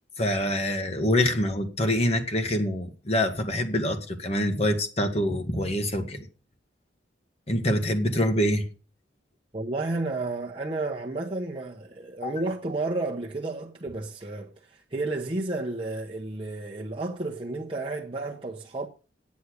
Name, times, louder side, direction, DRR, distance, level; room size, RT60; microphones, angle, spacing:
voice 1, 0.2-6.3 7.5-8.7 12.2-12.3, left 1 dB, 35° left, 1.8 m, -25 dB
voice 2, 9.5-18.9, right 2 dB, 30° right, 0.9 m, -32 dB
9.6 x 8.4 x 6.5 m
head